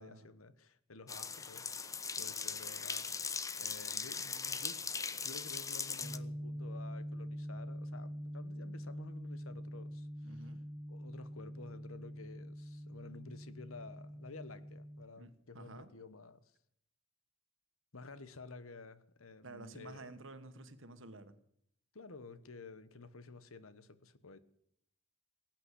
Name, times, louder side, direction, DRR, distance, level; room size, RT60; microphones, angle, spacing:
voice 1, 0.0-10.5 10.9-16.5 17.9-20.1 21.9-24.4, left 3 dB, 75° left, 1.2 m, -52 dB
sound 1, 1.1-6.2, left 5 dB, 15° left, 0.6 m, -39 dB
sound 2, 6.0-15.1, equal, 15° right, 0.9 m, -45 dB
voice 2, 10.2-10.6 15.2-15.9 19.4-21.3, right 2 dB, 60° right, 1.5 m, -51 dB
18.0 x 9.0 x 8.3 m
head